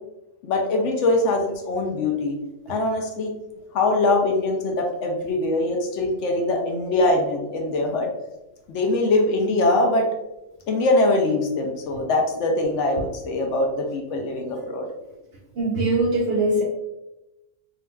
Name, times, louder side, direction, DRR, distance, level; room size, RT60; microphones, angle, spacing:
voice 1, 0.4-2.3 2.7-3.3 3.7-8.1 8.7-10.1 10.7-14.9, left 2 dB, 70° left, 2 dB, 0.8 m, -22 dB
voice 2, 15.6-16.6, right 2 dB, 65° right, -1 dB, 0.6 m, -21 dB
3.7 x 2.3 x 2.2 m, 0.94 s
omnidirectional pair, 1.4 m